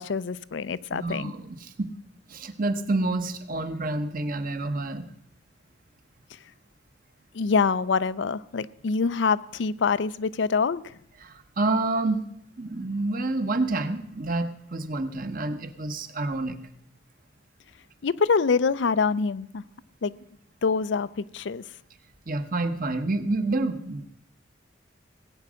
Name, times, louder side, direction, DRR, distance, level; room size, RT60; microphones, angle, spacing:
voice 1, 0.0-1.3 7.3-11.0 18.0-19.6 20.0-20.2 20.6-21.6, left 5 dB, 65° left, 16 dB, 0.5 m, -25 dB
voice 2, 0.9-1.9 2.3-5.1 11.2-12.2 12.6-16.6 22.3-24.1, right 2 dB, 45° right, 9 dB, 1.0 m, -28 dB
18.0 x 8.7 x 6.3 m, 0.70 s
head